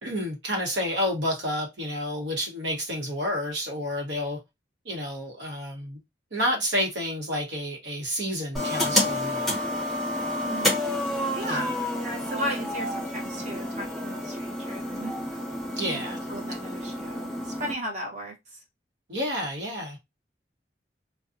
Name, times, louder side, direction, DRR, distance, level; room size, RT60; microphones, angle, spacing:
voice 1, 0.0-4.4 4.8-6.0 6.3-9.5 11.5-11.7 15.7-16.2 19.1-20.0, equal, 75° right, 1.0 m, -30 dB
sound 1, 8.5-17.7, left 1 dB, ahead, 0.8 m, -29 dB
voice 2, 10.4-10.8 11.3-15.2 15.9-18.6, equal, 40° right, 0.8 m, -36 dB
2.5 x 2.2 x 2.5 m
head